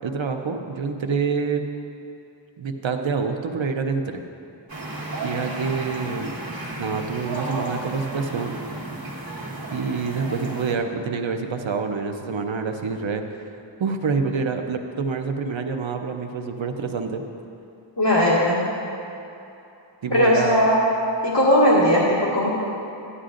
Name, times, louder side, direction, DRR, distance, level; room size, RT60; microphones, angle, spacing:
voice 1, 0.0-1.6 2.6-4.2 5.2-6.3 6.8-8.5 9.7-13.4 13.8-17.2 20.0-20.7, right 5 dB, 75° right, 5 dB, 0.8 m, -27 dB
sound 1, 4.7-10.8, right 2 dB, 50° right, 2.1 m, -33 dB
voice 2, 18.0-18.7 20.1-20.8 21.2-22.5, equal, 65° left, -7 dB, 1.9 m, -18 dB
15.0 x 11.5 x 2.6 m, 2.8 s
wide cardioid pair, 80°, 46 cm